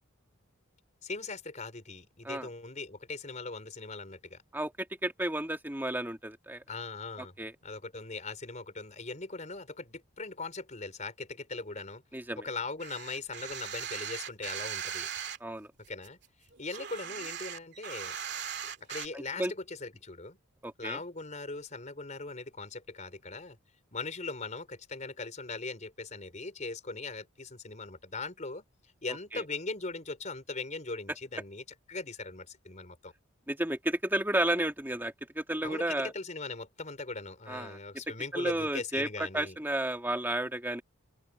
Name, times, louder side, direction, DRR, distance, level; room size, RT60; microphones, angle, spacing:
voice 1, 1.0-4.4 6.7-7.3 7.6-12.0 12.4-15.1 15.9-16.2 16.6-18.2 18.9-20.4 20.8-23.6 23.9-28.6 29.0-31.6 31.9-33.1 35.6-39.6, left 3 dB, 35° left, 4.2 m, -40 dB
voice 2, 4.5-6.6 7.4-7.5 12.1-12.4 15.4-15.7 19.1-19.5 20.6-21.0 29.3-29.4 33.5-36.1 37.5-37.8 38.3-40.8, right 1 dB, 10° right, 2.0 m, -32 dB
sound 1, 12.8-15.4 15.9-19.1, right 8 dB, 55° right, 2.4 m, -39 dB
open air
head